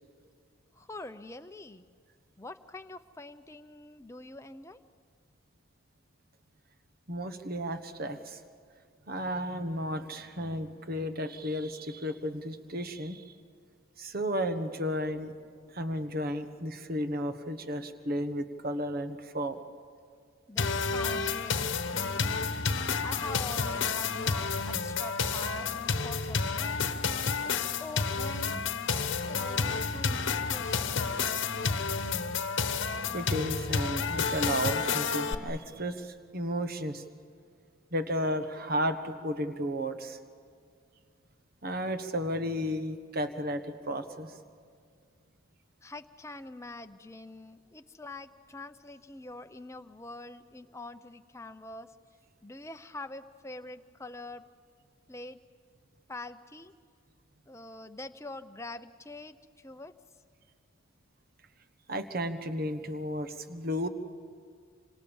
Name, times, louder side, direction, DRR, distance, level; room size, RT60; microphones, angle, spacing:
voice 1, 0.8-1.9 2.4-4.8 20.5-21.7 21.9-22.5 23.0-26.8 27.4-28.6 28.9-30.9 45.8-51.9 52.4-54.4 55.1-55.4 56.1-56.7 57.5-59.4 59.6-59.9, left 2 dB, 15° left, 8 dB, 0.7 m, -44 dB
voice 2, 7.1-8.4 9.1-13.3 14.0-15.3 15.7-19.6 31.4-31.5 33.1-37.0 37.9-40.2 41.6-44.4 61.9-63.9, equal, 45° right, 9 dB, 1.2 m, -33 dB
sound 1, 20.6-35.3, left 5 dB, 60° left, 1.1 m, -30 dB
27.5 x 26.0 x 7.1 m, 2.1 s
head